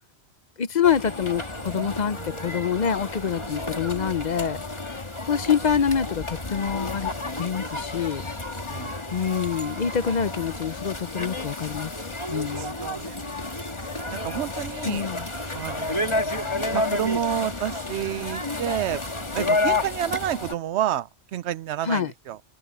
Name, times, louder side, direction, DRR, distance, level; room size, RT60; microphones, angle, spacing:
voice 1, 0.6-4.6 5.3-8.2 9.1-11.9 12.3-12.8 14.8-15.3 21.8-22.1, left 7 dB, 45° left, 0.7 m, -26 dB
sound 1, 0.8-20.5, left 2 dB, 25° left, 1.8 m, -31 dB
voice 2, 8.7-9.0 12.6-13.3 13.8-15.0 15.5-19.0 19.3-22.4, right 11 dB, 75° right, 0.9 m, -30 dB
omnidirectional pair, 1.2 m